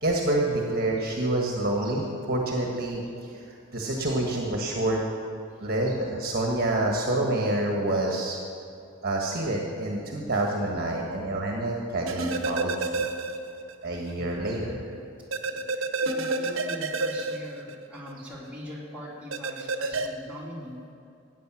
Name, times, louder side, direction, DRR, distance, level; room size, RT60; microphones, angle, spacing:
voice 1, 0.0-3.4 3.7-5.0 5.6-8.4 9.0-13.0 13.8-14.8, right 1 dB, 45° right, 0 dB, 1.5 m, -27 dB
sound 1, 12.1-13.8 14.1-14.2 15.3-18.1 19.3-20.1, right 3 dB, 70° right, 1.0 m, -29 dB
voice 2, 15.5-20.8, equal, 5° right, -7 dB, 3.1 m, -42 dB
15.0 x 9.4 x 6.2 m, 2.6 s
head